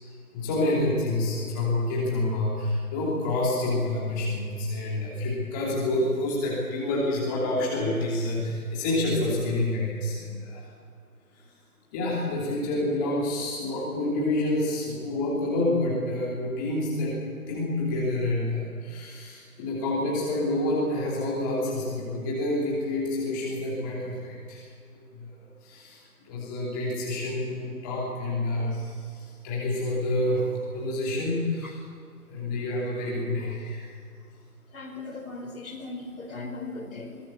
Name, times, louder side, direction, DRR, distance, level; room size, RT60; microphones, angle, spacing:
voice 1, 0.3-10.6 11.9-17.2 17.5-24.7 24.9-30.5 30.7-31.8 32.3-33.9, left 1 dB, 15° left, -5 dB, 3.0 m, -28 dB
voice 2, 34.7-37.2, left 3 dB, 65° left, 3 dB, 5.0 m, -38 dB
22.5 x 18.0 x 7.1 m, 2.2 s
figure-of-eight pair, 160°, 46 cm